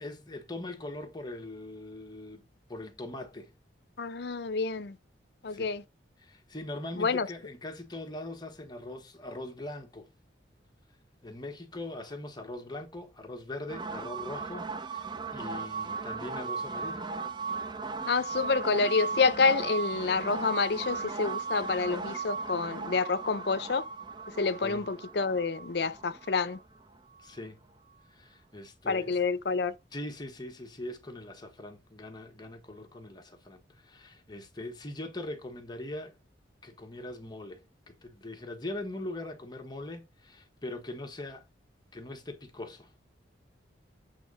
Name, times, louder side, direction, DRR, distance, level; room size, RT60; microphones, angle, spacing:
voice 1, 0.0-2.4 2.7-3.5 5.5-5.6 6.2-10.1 11.2-17.1 24.6-24.9 27.2-27.6 28.1-29.2 29.9-36.2 36.6-41.5 41.9-42.9, left 1 dB, 25° left, 1.3 m, -41 dB
voice 2, 4.0-5.0 5.4-5.8 7.0-7.3 18.1-23.8 24.3-26.6 28.9-29.8, left 4 dB, 60° left, 0.6 m, -28 dB
sound 1, 13.7-27.3, right 4 dB, 25° right, 0.5 m, -37 dB
8.2 x 3.5 x 5.3 m
head